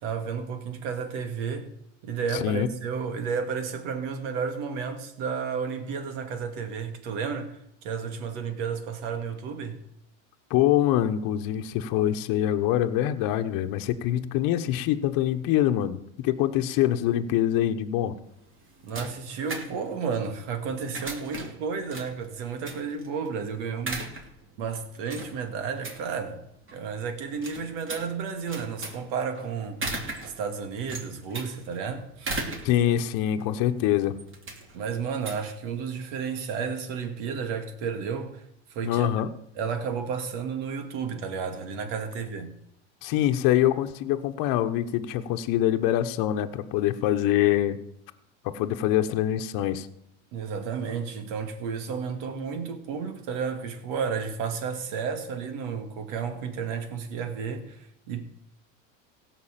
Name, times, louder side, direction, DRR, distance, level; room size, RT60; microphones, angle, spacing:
voice 1, 0.0-1.7 2.0-9.8 18.8-24.0 24.6-26.4 26.7-32.3 34.7-38.4 38.7-39.1 39.6-42.5 50.3-58.2, right 6 dB, 75° right, 2.3 m, -32 dB
voice 2, 2.3-2.7 10.5-18.2 32.6-34.2 38.8-39.3 43.0-47.8 48.4-49.9, left 12 dB, 60° left, 1.1 m, -24 dB
sound 1, 18.2-36.2, right 2 dB, 30° right, 2.8 m, -39 dB
16.5 x 6.1 x 7.5 m
supercardioid pair, 110°, 38 cm